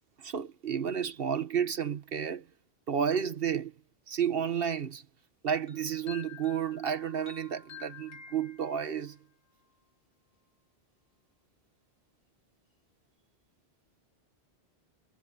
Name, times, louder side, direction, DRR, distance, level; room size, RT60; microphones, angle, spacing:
voice 1, 0.2-2.5 2.9-3.7 4.1-5.0 5.4-9.2, right 8 dB, 60° right, 1.4 m, -31 dB
sound 1, 5.7-9.2, left 7 dB, 60° left, 2.4 m, -49 dB
omnidirectional pair, 1.1 m